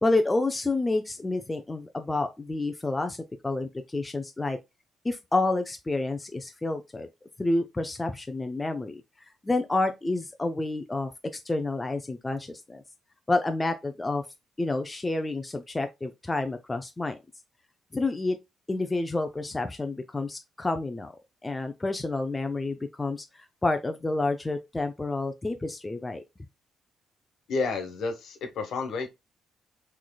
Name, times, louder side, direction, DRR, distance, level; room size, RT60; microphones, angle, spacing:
voice 1, 0.0-4.6 5.0-7.1 7.4-11.1 11.4-12.8 13.3-14.2 14.6-17.2 17.9-18.4 18.7-21.1 21.4-26.2, left 2 dB, 15° left, 0.4 m, -29 dB
voice 2, 27.5-29.1, left 4 dB, 65° left, 1.2 m, -30 dB
6.0 x 3.2 x 2.2 m
cardioid pair, 160°, 0 cm